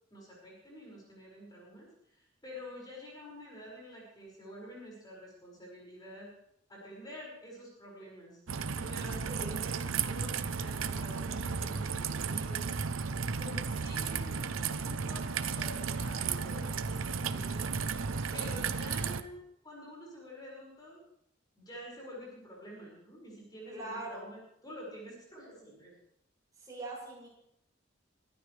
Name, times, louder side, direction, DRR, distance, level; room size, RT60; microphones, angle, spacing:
voice 1, 0.1-6.3 6.7-18.0 18.3-21.0 21.6-25.9, equal, 20° left, -4 dB, 5.7 m, -48 dB
Raindrop / Trickle dribble, 8.5-19.2, right 5 dB, 85° right, 0.7 m, -34 dB
voice 2, 23.7-24.3 26.6-27.3, right 2 dB, 20° right, -4 dB, 6.8 m, -42 dB
24.0 x 12.5 x 3.4 m, 0.75 s
head